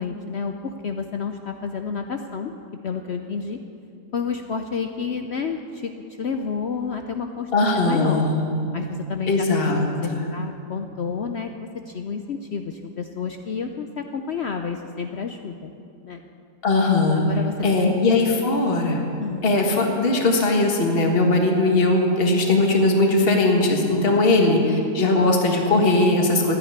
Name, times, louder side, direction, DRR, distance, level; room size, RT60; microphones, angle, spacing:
voice 1, 0.0-2.5 2.8-3.6 4.1-5.9 6.2-8.2 8.7-9.5 10.0-15.7 16.0-16.2 17.1-18.0 19.2-19.4, left 6 dB, 65° left, 6 dB, 0.6 m, -30 dB
voice 2, 7.5-8.4 9.3-10.2 16.6-17.3 17.6-19.0 19.4-26.6, left 2 dB, 35° left, 1 dB, 1.8 m, -19 dB
13.5 x 10.0 x 9.5 m, 2.6 s
omnidirectional pair, 1.8 m